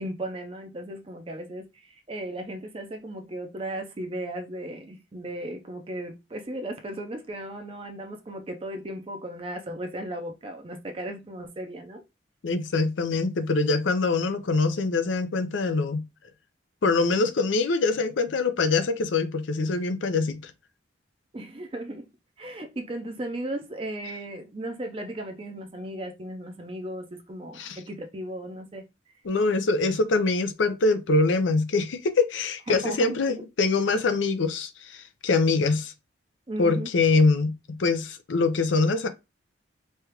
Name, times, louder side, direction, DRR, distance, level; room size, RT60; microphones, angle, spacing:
voice 1, 0.0-12.0 21.3-22.1 22.4-28.8 32.7-33.1 36.5-36.9, right 1 dB, 30° right, 0.5 m, -36 dB
voice 2, 12.4-16.0 16.8-20.5 27.6-27.8 29.2-35.9 36.6-37.5 37.8-39.1, left 3 dB, 85° left, 0.5 m, -24 dB
3.2 x 2.3 x 2.8 m
head